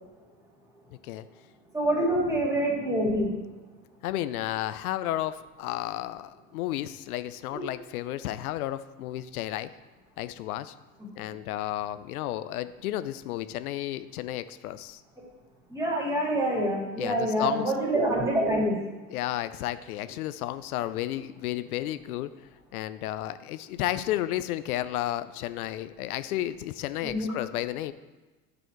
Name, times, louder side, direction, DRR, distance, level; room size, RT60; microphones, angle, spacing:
voice 1, 1.7-3.3 7.5-7.6 15.7-18.8 27.0-27.3, right 1 dB, 5° right, -4 dB, 2.5 m, -26 dB
voice 2, 4.0-9.7 10.2-10.7 11.2-15.0 17.0-17.7 19.1-22.3 22.7-27.9, left 14 dB, 90° left, 13 dB, 0.5 m, -32 dB
9.5 x 4.2 x 4.5 m, 1.2 s
supercardioid pair, 110°, 42 cm